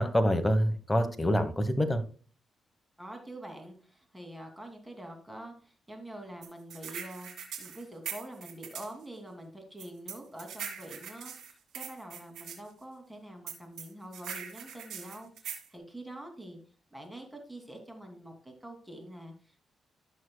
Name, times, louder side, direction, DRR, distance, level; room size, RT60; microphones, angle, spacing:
voice 1, 0.0-2.0, equal, 15° left, 8 dB, 1.1 m, -26 dB
voice 2, 3.0-7.3 7.6-16.6 16.9-19.6, right 1 dB, 10° right, 3 dB, 2.6 m, -46 dB
sound 1, 6.4-8.9 9.8-12.6 13.5-15.7, right 8 dB, 85° right, 1.9 m, -41 dB
14.0 x 6.4 x 2.3 m, 0.40 s
cardioid pair, 75°, 0 cm